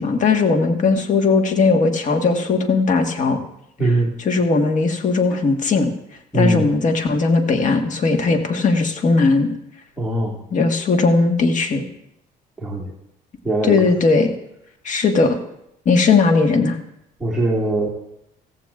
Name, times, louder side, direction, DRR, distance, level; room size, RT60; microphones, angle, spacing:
voice 1, 0.0-3.4 3.8-5.9 6.3-9.5 10.5-11.8 13.6-14.3 14.8-15.4 15.8-16.8, left 4 dB, 50° left, 5 dB, 1.4 m, -18 dB
voice 2, 3.8-4.1 6.3-6.7 10.0-10.4 12.6-12.9 13.4-13.8 17.2-17.9, right 1 dB, 5° right, -6 dB, 2.0 m, -21 dB
15.5 x 15.0 x 2.4 m, 0.80 s
cardioid pair, 110°, 17 cm